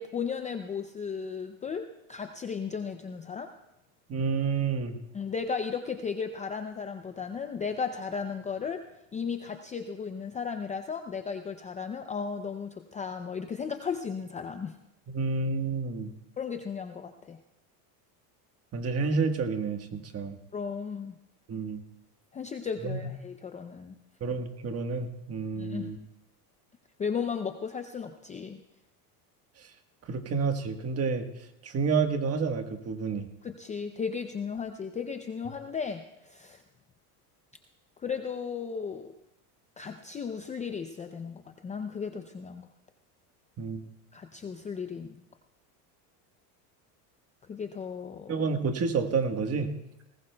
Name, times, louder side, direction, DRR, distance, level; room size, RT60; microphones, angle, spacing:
voice 1, 0.0-3.5 5.1-8.8 9.1-14.7 16.4-17.4 20.5-21.1 22.3-24.0 25.6-25.9 27.0-28.6 33.4-36.6 38.0-39.1 39.8-42.7 44.1-45.2 47.5-48.5, left 6 dB, 15° left, 6 dB, 0.5 m, -35 dB
voice 2, 4.1-5.0 15.1-16.1 18.7-20.4 21.5-21.8 22.8-23.0 24.2-26.0 30.1-31.2 31.6-33.3 43.6-43.8 48.3-49.7, right 5 dB, 30° right, 6 dB, 1.4 m, -29 dB
19.5 x 19.0 x 2.3 m, 0.87 s
supercardioid pair, 125°, 46 cm